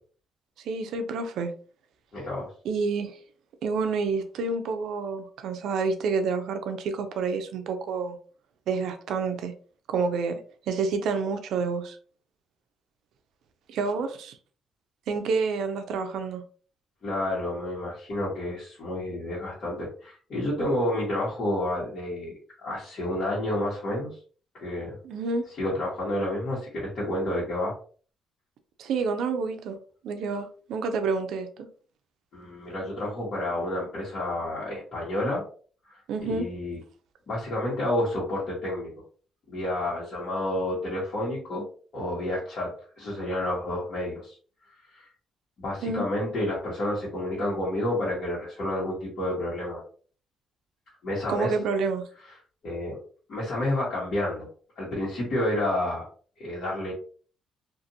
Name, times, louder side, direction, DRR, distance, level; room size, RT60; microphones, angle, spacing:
voice 1, 0.6-1.5 2.6-3.2 3.6-8.2 8.7-9.5 9.9-10.4 10.7-12.0 13.7-14.4 15.1-16.4 25.0-25.5 28.8-29.8 30.0-31.7 36.1-36.5 45.8-46.0 51.3-52.1, right 4 dB, 80° right, 7 dB, 0.5 m, -28 dB
voice 2, 2.1-2.5 17.0-22.3 22.6-24.1 24.6-25.0 25.6-27.7 32.3-35.4 35.8-36.8 37.3-38.9 39.5-41.6 41.9-42.7 43.0-44.3 44.9-45.1 45.6-49.8 51.0-51.5 52.6-53.0 53.3-54.5 54.8-56.0 56.4-56.9, left 1 dB, 60° left, -8 dB, 1.2 m, -30 dB
2.5 x 2.5 x 2.7 m, 0.42 s
cardioid pair, 90°, 0 cm